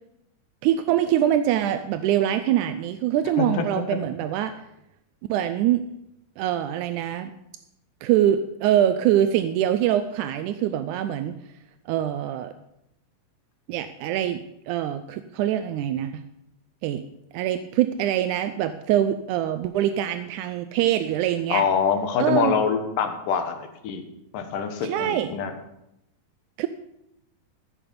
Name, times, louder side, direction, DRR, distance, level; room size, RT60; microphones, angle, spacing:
voice 1, 0.6-4.5 5.3-5.8 6.4-7.3 8.0-11.3 11.9-12.5 13.7-14.4 14.7-16.2 16.8-17.0 17.3-21.7 22.2-22.5 24.8-25.3 26.6-26.7, right 11 dB, 85° right, 10 dB, 1.8 m, -24 dB
voice 2, 21.5-23.6 23.8-24.0 24.3-25.5, left 7 dB, 75° left, 6 dB, 2.7 m, -24 dB
14.5 x 6.7 x 5.2 m, 0.82 s
omnidirectional pair, 4.0 m